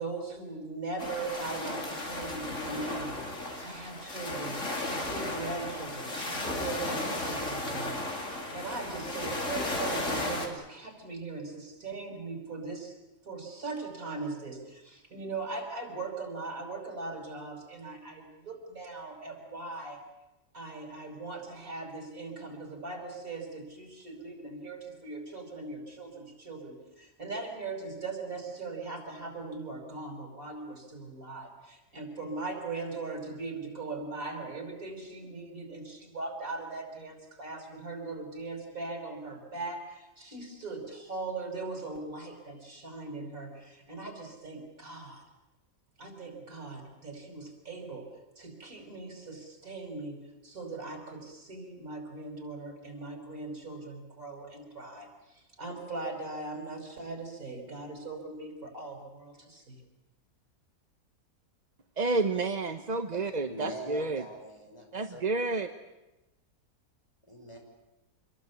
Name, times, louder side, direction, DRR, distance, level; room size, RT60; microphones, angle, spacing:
voice 1, 0.0-3.3 3.6-4.6 4.9-12.9 13.2-20.0 20.5-45.2 46.0-48.1 48.4-59.8, right 3 dB, 60° right, 4 dB, 5.9 m, -40 dB
sound 1, 1.0-10.5, left 2 dB, 50° left, 3.8 m, -35 dB
voice 2, 62.0-64.2 64.9-65.7, right 3 dB, 30° right, 7 dB, 0.9 m, -30 dB
voice 3, 63.5-64.9 65.1-65.2 67.3-67.6, equal, 15° left, 1 dB, 6.0 m, -42 dB
26.5 x 21.5 x 8.3 m, 0.99 s
omnidirectional pair, 1.7 m